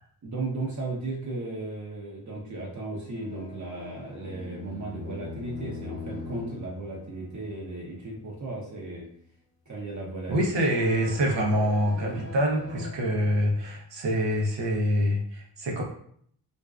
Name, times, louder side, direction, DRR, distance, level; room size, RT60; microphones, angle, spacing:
voice 1, 0.2-9.1 9.7-10.4 12.0-12.2, right 2 dB, 45° right, -3 dB, 0.7 m, -35 dB
sound 1, 3.1-8.5 8.9-9.2 10.4-13.7, left 4 dB, 35° left, 1.1 m, -42 dB
voice 2, 10.3-15.8, equal, 75° right, -1 dB, 0.7 m, -25 dB
2.5 x 2.2 x 2.3 m, 0.63 s
cardioid pair, 50°, 43 cm